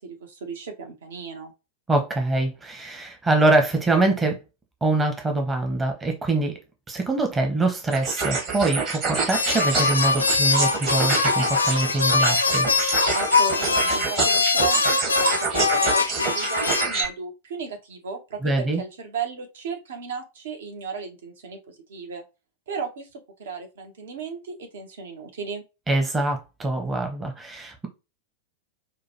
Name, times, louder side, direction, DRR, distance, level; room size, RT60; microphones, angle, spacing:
voice 1, 0.0-1.5 13.1-22.2 22.7-25.6, right 5 dB, 60° right, 0.9 m, -35 dB
voice 2, 1.9-4.4 4.8-6.5 6.9-12.7 18.4-18.8 25.9-27.9, right 2 dB, 15° right, 0.8 m, -24 dB
sound 1, 7.9-17.0, right 4 dB, 40° right, 1.5 m, -27 dB
sound 2, 9.3-16.9, left 4 dB, 75° left, 0.4 m, -22 dB
4.9 x 2.2 x 2.9 m
figure-of-eight pair, 90°, 0 cm